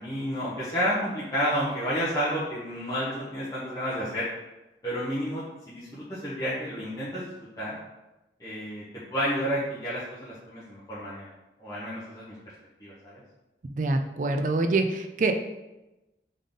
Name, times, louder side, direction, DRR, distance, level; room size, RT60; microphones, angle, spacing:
voice 1, 0.0-4.3 4.8-7.8 8.4-8.8 9.1-11.3 11.6-12.3 12.8-13.2, equal, 20° left, -10 dB, 0.9 m, -31 dB
voice 2, 13.8-15.3, right 3 dB, 45° right, 6 dB, 0.4 m, -25 dB
3.7 x 3.7 x 3.8 m, 1.0 s
head